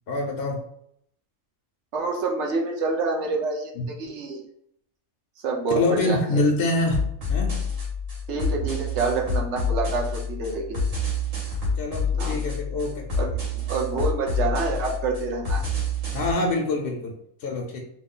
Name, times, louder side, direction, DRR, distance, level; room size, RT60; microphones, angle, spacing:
voice 1, 0.1-0.6 3.8-3.9 5.7-7.0 7.3-7.6 11.8-13.0 16.1-17.8, left 2 dB, 65° left, 1 dB, 0.8 m, -25 dB
voice 2, 1.9-4.4 5.4-6.4 8.3-10.8 12.1-12.4 13.2-15.6, right 3 dB, 65° right, 1 dB, 0.9 m, -27 dB
sound 1, 6.9-16.3, left 2 dB, 80° right, 1.7 m, -28 dB
3.0 x 2.3 x 3.7 m, 0.70 s
omnidirectional pair, 1.3 m